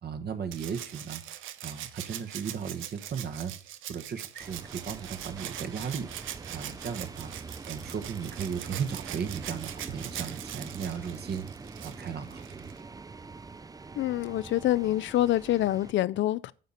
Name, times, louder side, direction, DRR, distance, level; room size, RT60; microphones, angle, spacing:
voice 1, 0.0-1.2 1.6-3.5 3.9-7.3 7.6-11.5 11.8-12.7, right 7 dB, 55° right, 1.3 m, -36 dB
Rattle (instrument), 0.5-12.8 14.2-14.3, right 12 dB, 85° right, 0.7 m, -42 dB
sound 1, 4.4-15.9, right 4 dB, 20° right, 0.5 m, -44 dB
voice 2, 14.0-16.5, left 14 dB, 70° left, 0.5 m, -26 dB
9.4 x 4.1 x 7.3 m
cardioid pair, 90°, 20 cm